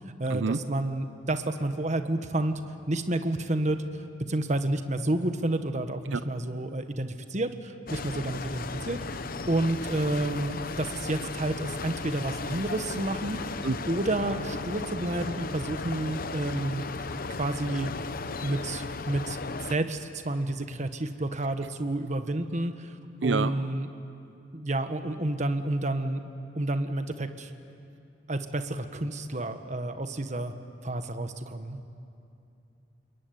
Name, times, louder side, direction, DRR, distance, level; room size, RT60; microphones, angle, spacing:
voice 1, 0.2-2.5 2.9-3.8 4.3-9.0 9.5-13.4 13.9-16.8 17.4-17.9 18.4-22.9 23.2-23.9 24.5-26.2 26.5-27.5 28.3-30.5 30.8-31.8, right 1 dB, 40° right, 8 dB, 1.4 m, -30 dB
sound 1, 7.9-19.8, left 3 dB, 50° left, 0.8 m, -35 dB
voice 2, 23.2-23.5, right 4 dB, 90° right, 13 dB, 0.6 m, -27 dB
28.0 x 22.0 x 9.5 m, 2.6 s
head